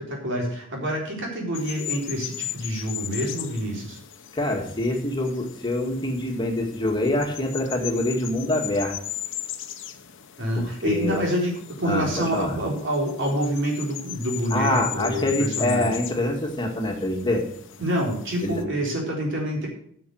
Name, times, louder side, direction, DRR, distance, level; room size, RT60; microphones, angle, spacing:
voice 1, 0.0-4.0 10.4-15.9 17.8-19.7, equal, 65° right, -1 dB, 3.9 m, -27 dB
sound 1, 1.5-18.6, left 12 dB, 65° left, 1.0 m, -38 dB
voice 2, 4.3-8.9 10.6-11.2 11.9-12.6 14.5-17.4 18.4-18.6, left 1 dB, 20° left, 1 dB, 1.9 m, -25 dB
9.3 x 6.8 x 7.8 m, 0.65 s
head